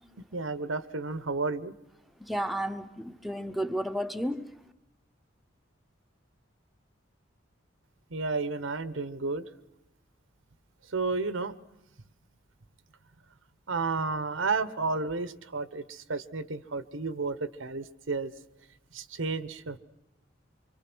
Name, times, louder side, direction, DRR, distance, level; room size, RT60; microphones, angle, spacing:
voice 1, 0.3-1.7 8.1-9.4 10.9-11.5 13.7-18.3 18.9-19.8, right 4 dB, 85° right, 13 dB, 1.0 m, -32 dB
voice 2, 2.2-4.5, equal, ahead, 6 dB, 0.8 m, -32 dB
25.5 x 25.0 x 6.2 m, 0.94 s
head